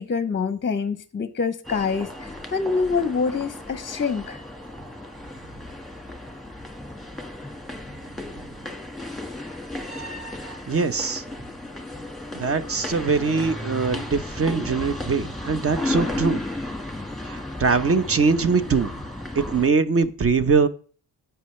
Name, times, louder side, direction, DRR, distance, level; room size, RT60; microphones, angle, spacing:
voice 1, 0.0-4.4, left 5 dB, 30° left, 0.7 m, -26 dB
sound 1, 1.6-19.7, left 1 dB, ahead, 1.7 m, -34 dB
voice 2, 10.7-11.2 12.3-16.4 17.3-18.9 19.4-20.7, right 4 dB, 35° right, 0.9 m, -22 dB
17.0 x 5.8 x 3.2 m
cardioid pair, 105°, 40 cm